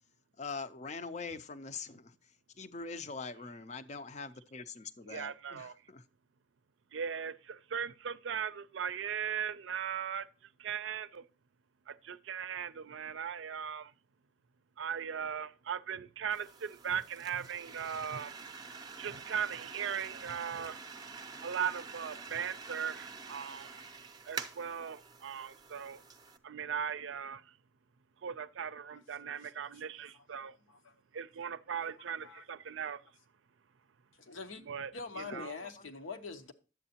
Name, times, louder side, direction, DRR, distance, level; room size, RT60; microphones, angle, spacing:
voice 1, 0.4-2.1 2.6-6.0 35.3-35.9, left 4 dB, 35° left, 0.5 m, -43 dB
voice 2, 5.1-5.7 6.9-10.3 10.6-11.2 11.9-13.9 14.8-18.3 19.0-20.8 21.4-23.8 24.3-26.0 26.4-27.4 28.2-30.5 31.1-33.0 34.6-34.9 35.2-35.5, right 7 dB, 75° right, 0.5 m, -38 dB
sound 1, 16.3-26.4, right 4 dB, 20° right, 0.5 m, -47 dB
voice 3, 32.0-32.4 34.2-34.6 34.9-36.5, left 4 dB, 80° left, 0.9 m, -45 dB
10.5 x 7.8 x 2.8 m
head